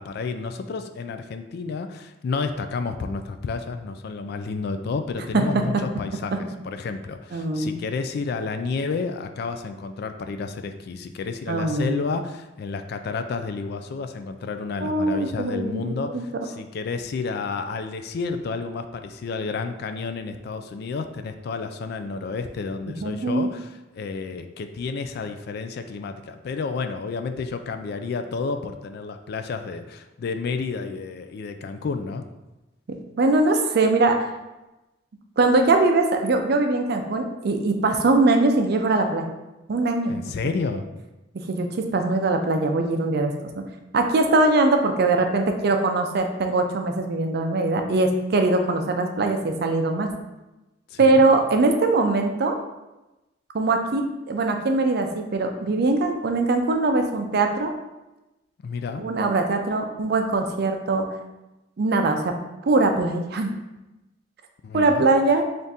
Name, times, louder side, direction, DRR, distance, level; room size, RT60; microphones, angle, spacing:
voice 1, 0.0-32.3 40.1-40.9 50.9-51.2 58.6-59.1 64.6-65.1, left 4 dB, 60° left, 8 dB, 0.3 m, -31 dB
voice 2, 7.3-7.7 11.5-12.0 14.8-16.2 23.0-23.5 33.2-34.2 35.4-39.3 39.7-40.1 41.5-43.7 43.9-50.1 51.0-52.6 53.5-57.7 59.0-61.1 61.8-62.3 62.6-63.5 64.7-65.4, right 2 dB, 60° right, 5 dB, 0.5 m, -21 dB
3.5 x 2.5 x 4.1 m, 1.0 s
head